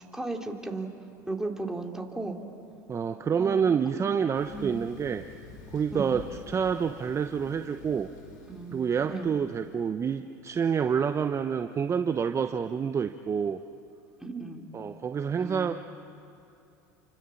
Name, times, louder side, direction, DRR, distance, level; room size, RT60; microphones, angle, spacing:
voice 1, 0.1-0.9 1.3-2.4 3.4-4.2 4.5-4.8 5.9-6.2 8.5-9.3 14.2-14.6 15.4-15.7, right 3 dB, 5° right, 2 dB, 3.3 m, -36 dB
voice 2, 2.9-5.2 5.7-8.1 8.7-13.6 14.7-15.7, right 7 dB, 30° right, 8 dB, 0.9 m, -28 dB
Thunder, 4.3-9.7, left 4 dB, 75° left, 5.2 m, -49 dB
29.5 x 25.5 x 7.2 m, 2.8 s
hypercardioid pair, 85°, 10 cm